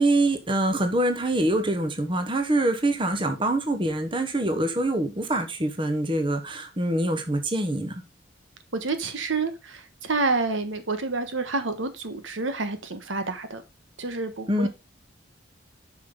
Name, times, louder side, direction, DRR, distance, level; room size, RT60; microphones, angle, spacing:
voice 1, 0.0-8.0 14.5-14.7, right 1 dB, 25° right, 1.1 m, -25 dB
voice 2, 8.7-13.6 14.0-14.7, right 3 dB, 80° right, 1.3 m, -28 dB
8.5 x 5.8 x 3.8 m
head